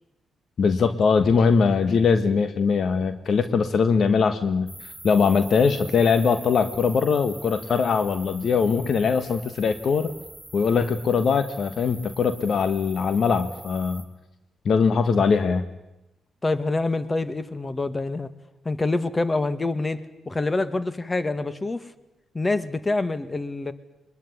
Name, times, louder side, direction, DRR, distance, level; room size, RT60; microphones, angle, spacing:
voice 1, 0.6-4.7 5.0-10.1 10.5-14.0 14.6-15.6, left 5 dB, 60° left, 11 dB, 1.4 m, -21 dB
sound 1, 4.7-14.0, right 1 dB, 10° right, 8.0 m, -44 dB
voice 2, 16.4-18.3 18.7-20.0 20.3-21.8 22.3-23.7, left 2 dB, 30° left, 13 dB, 2.0 m, -26 dB
22.0 x 21.0 x 9.8 m, 0.94 s
hypercardioid pair, 45°, 0 cm